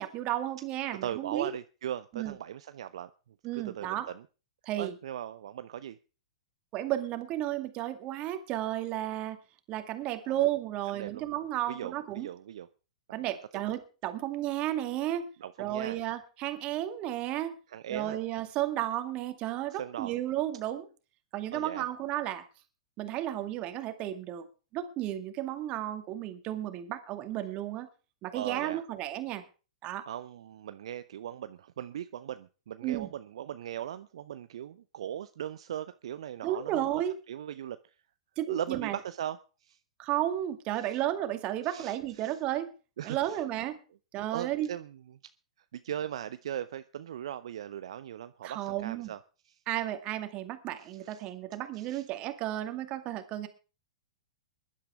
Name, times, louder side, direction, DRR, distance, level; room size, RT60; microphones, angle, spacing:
voice 1, 0.0-1.5 2.1-2.4 3.4-4.1 4.6-5.0 6.7-9.4 9.7-12.3 13.1-15.3 15.6-17.5 17.9-20.9 21.3-22.4 23.0-24.5 24.7-27.9 28.2-29.4 29.8-30.1 32.8-33.1 36.4-37.2 38.4-39.0 40.0-42.7 43.0-43.8 44.1-44.7 48.4-49.1 49.7-53.5, right 13 dB, 35° right, 8 dB, 2.2 m, -33 dB
voice 2, 1.0-3.1 3.5-4.2 4.8-6.0 10.2-10.4 10.9-11.2 11.7-12.7 15.4-16.0 17.7-18.2 19.7-20.1 21.5-21.9 28.3-28.8 30.1-37.0 37.3-37.9 38.5-39.8 40.8-41.0 41.6-42.4 43.0-43.4 44.3-45.0 45.7-49.2 49.4-49.6 50.8-51.2 51.7-52.1, right 10 dB, 65° right, 12 dB, 0.7 m, -39 dB
22.0 x 11.5 x 3.6 m, 0.35 s
figure-of-eight pair, 105°, 3 cm